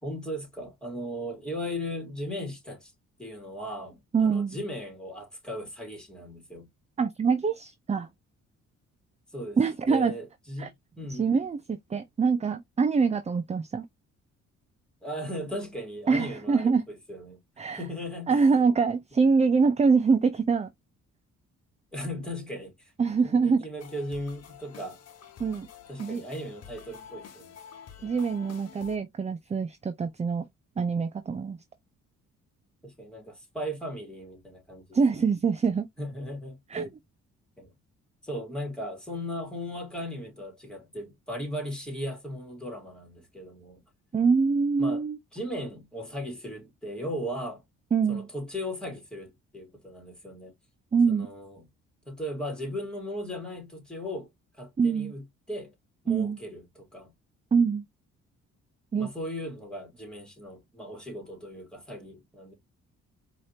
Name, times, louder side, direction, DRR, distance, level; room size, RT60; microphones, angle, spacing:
voice 1, 0.0-2.9 3.2-6.7 9.3-9.6 9.9-11.3 15.0-17.4 17.8-18.6 21.9-22.9 23.2-25.0 25.9-27.6 28.0-28.1 32.8-35.2 36.0-36.9 37.6-37.7 38.2-43.8 44.8-45.0 45.3-47.6 48.1-50.5 51.1-51.6 52.1-54.3 54.6-55.2 55.5-55.7 56.0-57.1 59.0-62.5, equal, 5° left, 2.8 m, -37 dB
voice 2, 4.1-4.6 7.0-8.1 9.6-10.2 10.6-10.7 11.1-13.8 16.1-16.8 17.6-17.8 18.3-20.7 23.0-23.6 25.4-25.7 26.0-26.2 28.0-30.5 30.8-31.6 34.9-35.9 36.7-36.9 44.1-45.2 47.9-48.3 50.9-51.3 54.8-55.1 56.1-56.4 57.5-57.8 58.9-59.1, right 5 dB, 25° right, 0.5 m, -24 dB
sound 1, 23.8-29.0, left 8 dB, 60° left, 1.0 m, -48 dB
4.7 x 3.0 x 2.8 m
cardioid pair, 80°, 29 cm